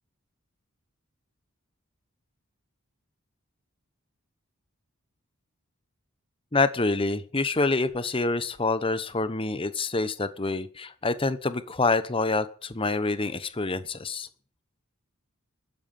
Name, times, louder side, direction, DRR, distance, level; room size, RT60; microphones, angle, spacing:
voice 1, 6.5-14.3, left 3 dB, 25° left, 13 dB, 1.0 m, -27 dB
13.0 x 9.3 x 9.3 m, 0.43 s
head